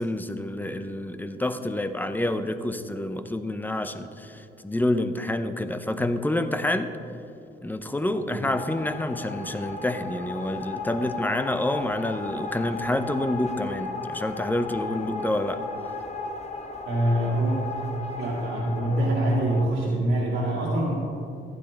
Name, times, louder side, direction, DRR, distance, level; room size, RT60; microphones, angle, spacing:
voice 1, 0.0-6.9 7.6-15.6, left 1 dB, 10° left, 9 dB, 0.6 m, -28 dB
sound 1, 8.5-19.6, left 3 dB, 35° left, 1.0 m, -35 dB
voice 2, 16.8-17.6 18.2-20.9, right 1 dB, 80° right, -6 dB, 2.3 m, -24 dB
15.0 x 9.6 x 3.4 m, 2.7 s
cardioid pair, 90°, 20 cm